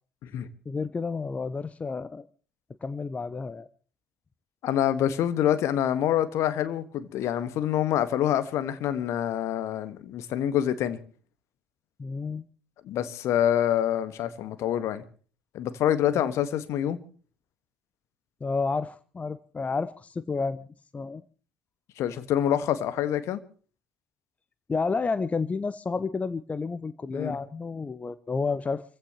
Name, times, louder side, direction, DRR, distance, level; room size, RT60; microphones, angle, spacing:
voice 1, 0.7-2.3 2.8-3.7 12.0-12.4 16.1-16.3 18.4-20.7 20.9-21.2 24.7-28.8, left 4 dB, 25° left, 0.8 m, -30 dB
voice 2, 4.6-11.0 12.8-15.0 15.5-17.0 22.0-23.4 27.1-27.3, left 10 dB, 55° left, 1.6 m, -26 dB
27.5 x 16.0 x 3.0 m
figure-of-eight pair, 55°, 6 cm